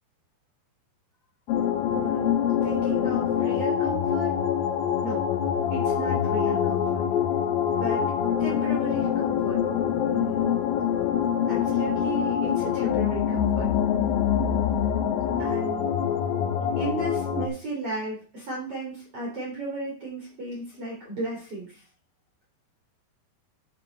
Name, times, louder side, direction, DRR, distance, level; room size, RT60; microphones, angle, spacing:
sound 1, 1.5-17.5, left 9 dB, 75° left, 2.3 m, -25 dB
voice 1, 1.8-4.3 5.0-5.2 5.7-7.0 7.8-8.0 8.4-9.6 10.1-10.6 11.5-13.7 15.4-15.9 16.8-21.8, right 2 dB, 35° right, -5 dB, 4.0 m, -34 dB
9.9 x 6.7 x 4.0 m, 0.39 s
omnidirectional pair, 5.2 m